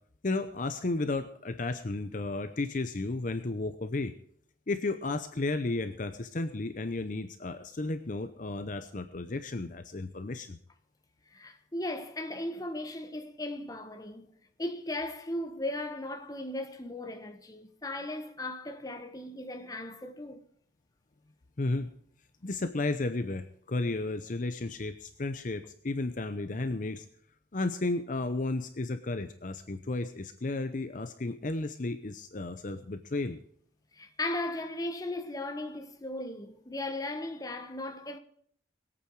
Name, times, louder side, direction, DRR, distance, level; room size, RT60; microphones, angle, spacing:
voice 1, 0.2-4.1 4.7-10.6 21.6-21.9 22.4-27.1 27.5-33.4, left 2 dB, 45° left, 0.7 m, -33 dB
voice 2, 11.3-14.3 14.6-20.4 33.9-38.2, left 1 dB, 20° left, 1.2 m, -37 dB
22.0 x 8.7 x 4.7 m
head